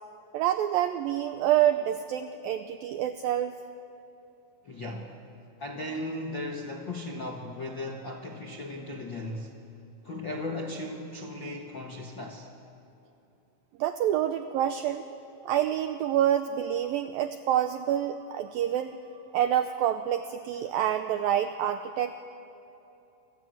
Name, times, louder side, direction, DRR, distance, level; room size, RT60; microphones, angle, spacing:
voice 1, 0.3-3.6 13.8-15.0 15.4-22.2, right 11 dB, 85° right, 9 dB, 2.1 m, -27 dB
voice 2, 4.6-5.2 5.6-9.6 10.0-12.5, left 1 dB, 60° left, 1 dB, 1.2 m, -36 dB
27.5 x 27.0 x 7.9 m, 2.9 s
omnidirectional pair, 5.0 m